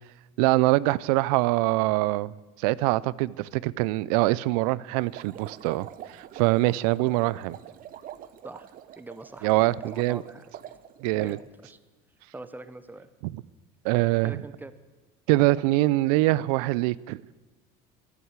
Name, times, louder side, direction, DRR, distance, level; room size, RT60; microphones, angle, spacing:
voice 1, 0.4-2.3 2.6-5.9 6.1-7.6 9.4-10.2 11.0-11.4 13.8-14.4 15.3-17.2, right 19 dB, 85° right, 0.5 m, -24 dB
sound 1, 5.0-11.4, right 11 dB, 50° right, 0.8 m, -45 dB
voice 2, 8.4-10.5 11.1-11.8 12.3-13.1 14.2-14.7, right 2 dB, 10° right, 0.9 m, -43 dB
12.5 x 11.5 x 8.2 m
supercardioid pair, 105°, 19 cm